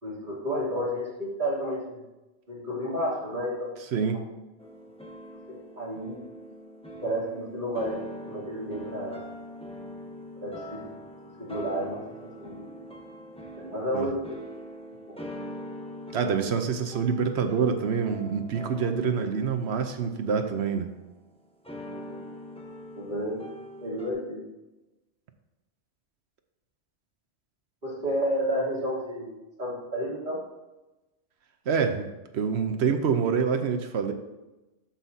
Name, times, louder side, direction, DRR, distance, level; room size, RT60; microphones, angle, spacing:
voice 1, 0.0-2.0 2.5-3.7 5.5-6.2 7.0-8.0 8.2-9.2 10.4-10.9 11.4-12.9 13.6-14.3 15.1-15.3 16.5-16.6 19.1-19.2 21.9-22.2 22.9-23.5 23.8-24.4 27.8-30.4, equal, 40° right, -8 dB, 3.3 m, -31 dB
voice 2, 3.9-4.2 13.9-14.1 16.1-20.9 31.7-32.1 32.3-34.1, right 6 dB, 65° right, 7 dB, 1.0 m, -26 dB
sound 1, 4.6-21.0 21.6-24.1, equal, 5° left, 0.8 m, -43 dB
13.0 x 5.8 x 2.7 m, 1.1 s
omnidirectional pair, 1.3 m